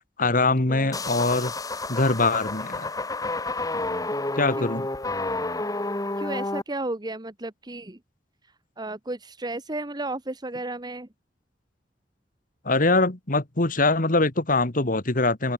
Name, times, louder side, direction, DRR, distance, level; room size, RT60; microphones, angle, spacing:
voice 1, 0.2-1.5 1.9-2.9 4.4-4.9 12.7-15.5, left 3 dB, 50° left, 1.9 m, -23 dB
voice 2, 0.7-1.0 4.6-4.7 6.2-8.0 8.8-11.1, right 2 dB, 25° right, 1.3 m, -33 dB
sound 1, 0.9-6.6, left 2 dB, 20° left, 1.9 m, -30 dB
open air
head